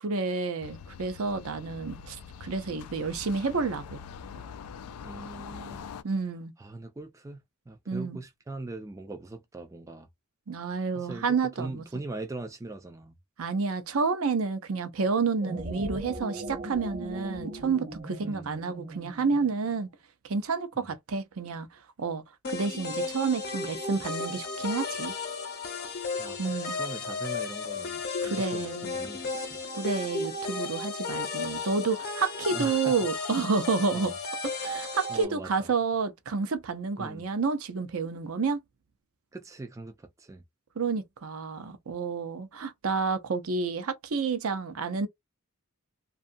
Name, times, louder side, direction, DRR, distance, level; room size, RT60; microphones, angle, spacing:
voice 1, 0.0-4.0 6.0-6.5 7.9-8.2 10.5-11.8 13.4-19.9 20.2-21.7 22.0-22.2 22.5-25.1 26.4-26.8 28.2-28.9 29.8-34.1 34.6-38.6 40.8-45.1, right 4 dB, 70° right, 0.6 m, -30 dB
sound 1, 0.6-6.0, left 6 dB, 85° left, 0.3 m, -44 dB
voice 2, 5.0-5.9 6.6-7.4 7.7-10.1 10.9-13.2 18.2-18.5 20.8-20.9 26.2-29.6 32.5-32.9 33.9-34.2 35.1-35.7 37.0-37.3 39.3-40.4, right 2 dB, 15° right, 0.3 m, -41 dB
sound 2, 15.2-19.8, right 1 dB, 35° right, 0.7 m, -39 dB
sound 3, 22.4-35.2, left 4 dB, 45° left, 0.8 m, -34 dB
2.6 x 2.4 x 2.5 m
head